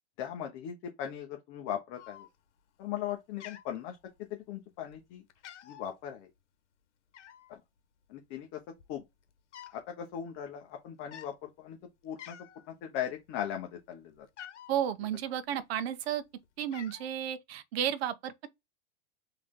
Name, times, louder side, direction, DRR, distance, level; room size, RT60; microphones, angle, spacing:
voice 1, 0.2-2.3 2.8-4.0 4.3-5.2 5.6-6.3 8.1-8.6 8.9-9.0 9.7-11.8 12.0-12.4 12.7-14.3, left 10 dB, 35° left, 0.9 m, -38 dB
Cat, 2.0-2.6 2.9-3.1 3.4-4.4 4.9-5.0 5.3-5.9 7.1-7.6 8.4-8.5 8.7-9.8 10.1-10.4 11.0-11.3 11.8-11.9 12.2-12.7 13.1-14.8 15.6-16.2 16.4-17.1, left 10 dB, 90° left, 1.0 m, -49 dB
voice 2, 14.7-16.2 16.6-18.5, right 10 dB, 65° right, 0.9 m, -33 dB
3.8 x 3.2 x 3.6 m
supercardioid pair, 145°, 34 cm